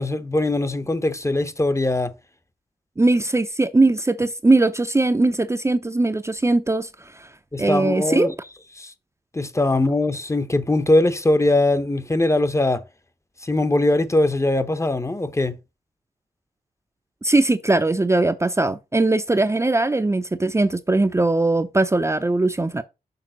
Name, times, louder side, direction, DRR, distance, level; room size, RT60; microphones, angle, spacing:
voice 1, 0.0-2.1 7.5-8.3 8.8-8.9 9.3-12.8 13.4-15.6, left 2 dB, 20° left, 0.9 m, -21 dB
voice 2, 3.0-6.9 7.1-7.3 7.6-8.3 17.2-22.8, right 2 dB, 20° right, 0.6 m, -20 dB
6.7 x 3.4 x 6.2 m
cardioid pair, 60°, 15 cm